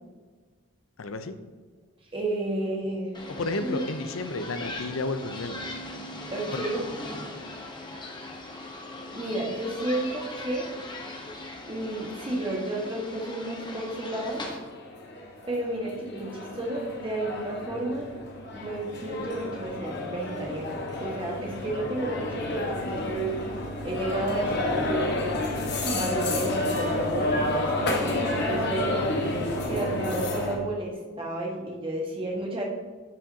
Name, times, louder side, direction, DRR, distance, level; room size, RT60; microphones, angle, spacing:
voice 1, 1.0-1.3 3.3-5.6 6.5-6.6, left 2 dB, 80° left, 9 dB, 0.7 m, -32 dB
voice 2, 2.1-3.2 3.6-3.7 6.3-6.8 9.1-10.7 11.6-14.4 15.5-18.1 18.5-23.2 23.8-24.8 25.8-29.0 29.7-32.6, right 1 dB, 25° right, -2 dB, 1.5 m, -32 dB
sound 1, 3.1-14.6, left 2 dB, 20° left, 1.0 m, -39 dB
sound 2, 14.1-14.2 14.5-30.6, left 1 dB, 55° left, 1.4 m, -30 dB
10.5 x 6.3 x 2.8 m, 1.5 s
head